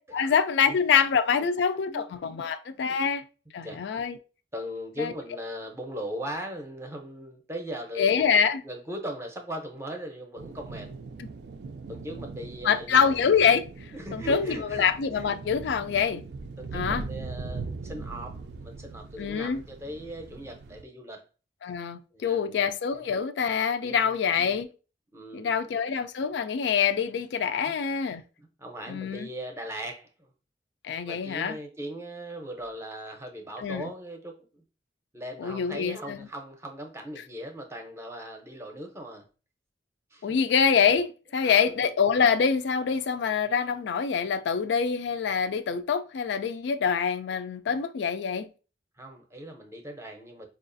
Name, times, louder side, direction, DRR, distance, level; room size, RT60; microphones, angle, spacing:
voice 1, 0.1-3.2 3.5-4.2 5.0-5.1 8.0-8.6 11.2-11.3 12.6-13.6 14.1-16.2 16.7-17.1 19.2-19.6 21.6-24.7 25.3-28.2 28.9-29.3 30.8-31.6 33.6-33.9 35.4-36.3 40.2-48.5, left 6 dB, 75° left, 0.3 m, -25 dB
voice 2, 4.5-10.9 11.9-13.1 13.9-15.3 16.1-16.2 16.6-21.2 22.1-22.7 23.8-24.1 25.1-25.6 27.7-28.1 28.4-30.3 31.0-34.6 35.1-39.2 40.1-40.3 41.4-41.8 49.0-50.5, equal, 15° right, 0.6 m, -39 dB
sound 1, 10.4-20.8, right 3 dB, 65° right, 0.4 m, -40 dB
4.6 x 2.4 x 2.5 m
head